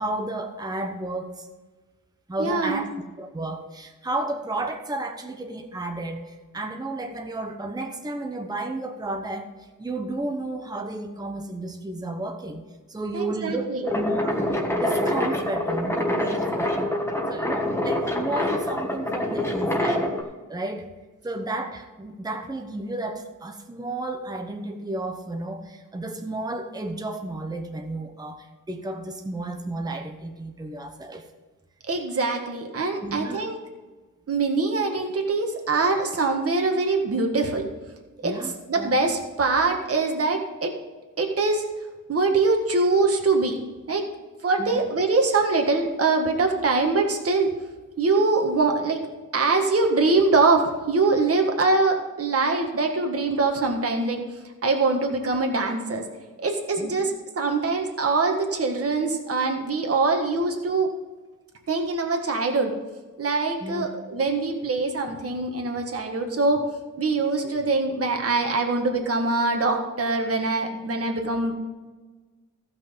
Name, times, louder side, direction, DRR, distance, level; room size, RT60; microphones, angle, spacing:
voice 1, 0.0-1.5 2.3-2.9 3.2-9.5 9.8-12.6 12.9-16.9 17.3-20.0 20.5-20.9 21.2-31.3 33.0-33.4 38.2-39.0 44.6-44.8 56.8-57.1 63.6-63.9, right 2 dB, 10° right, 4 dB, 0.9 m, -32 dB
voice 2, 2.4-2.9 13.1-13.8 31.9-33.6 34.3-37.7 38.2-40.8 41.2-41.6 42.1-43.6 43.9-44.1 44.4-47.5 48.0-49.1 49.3-54.2 54.6-56.0 56.4-60.9 61.7-62.7 63.2-66.6 67.0-71.5, right 3 dB, 45° right, 2 dB, 1.6 m, -23 dB
sound 1, 13.9-20.2, left 1 dB, 10° left, 1.5 m, -26 dB
15.0 x 6.0 x 5.2 m, 1.3 s
wide cardioid pair, 135°, 32 cm